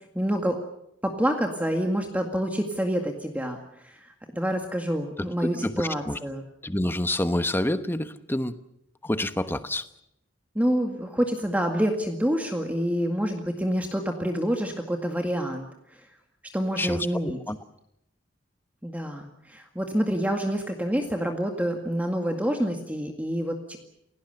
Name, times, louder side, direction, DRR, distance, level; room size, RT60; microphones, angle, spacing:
voice 1, 0.2-0.6 1.0-3.6 3.8-6.4 10.6-15.6 16.5-17.4 18.8-23.8, equal, 10° right, 3 dB, 2.0 m, -27 dB
voice 2, 5.5-6.2 6.6-8.6 9.0-9.9 16.8-17.1 17.5-17.6, left 1 dB, 10° left, 11 dB, 1.1 m, -27 dB
28.5 x 18.0 x 6.8 m, 0.80 s
head